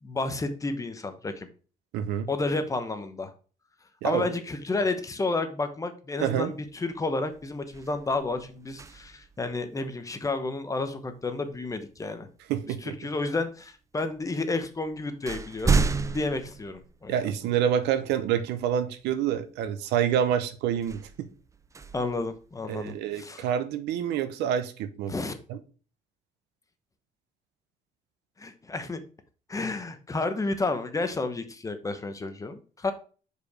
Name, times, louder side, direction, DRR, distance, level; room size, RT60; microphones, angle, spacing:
voice 1, 0.0-1.5 2.3-3.3 4.0-12.3 12.7-17.2 21.9-23.5 25.1-25.3 28.4-29.0 29.5-32.9, left 3 dB, 20° left, 0.9 m, -31 dB
voice 2, 1.9-2.3 4.0-4.3 6.2-6.5 12.5-12.9 17.1-21.3 22.7-25.1 25.5-25.6, right 9 dB, 85° right, 0.8 m, -27 dB
sound 1, 6.7-6.9 7.3-9.4 11.5-11.7 12.5-13.3 14.2-14.3 14.7-17.5 18.0-18.1 20.7-22.9, right 4 dB, 20° right, 0.4 m, -32 dB
5.1 x 4.7 x 4.8 m
cardioid pair, 110°, 17 cm